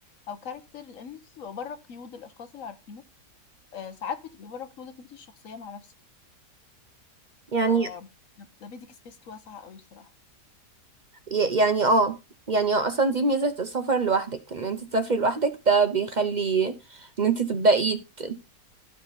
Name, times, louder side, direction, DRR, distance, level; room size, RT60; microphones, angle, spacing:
voice 1, 0.3-3.0 3.7-5.9 7.6-8.1 8.4-10.1, left 6 dB, 60° left, 1.1 m, -40 dB
voice 2, 7.5-7.9 11.3-12.1 12.5-16.7 17.2-18.3, right 3 dB, 50° right, 0.5 m, -23 dB
13.0 x 5.1 x 4.0 m
omnidirectional pair, 1.8 m